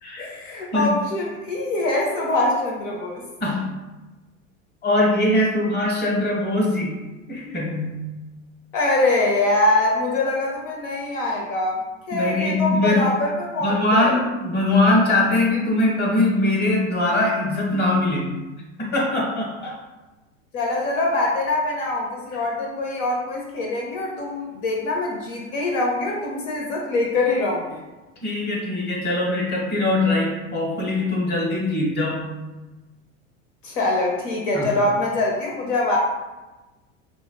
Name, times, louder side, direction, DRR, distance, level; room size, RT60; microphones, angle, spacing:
voice 1, 0.2-3.2 8.7-14.2 20.5-27.8 33.6-36.0, left 2 dB, 75° left, -2 dB, 0.9 m, -24 dB
voice 2, 4.8-7.0 7.3-8.0 12.1-13.1 13.6-18.3 18.8-19.8 28.2-32.3 34.5-34.7, left 2 dB, 25° left, -2 dB, 1.3 m, -21 dB
5.5 x 2.3 x 2.3 m, 1.1 s
hypercardioid pair, 95°, 38 cm